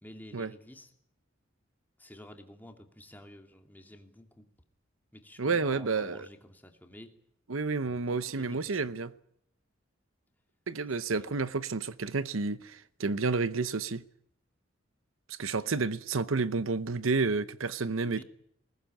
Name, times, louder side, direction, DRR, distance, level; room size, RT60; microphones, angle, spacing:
voice 1, 0.0-0.9 2.0-4.5 5.1-7.1 7.8-8.8 11.1-11.3 15.5-15.7 18.0-18.2, left 1 dB, 10° left, 2.6 m, -51 dB
voice 2, 5.4-6.3 7.5-9.1 10.7-14.0 15.3-18.2, right 4 dB, 90° right, 0.9 m, -30 dB
20.5 x 19.5 x 9.0 m
head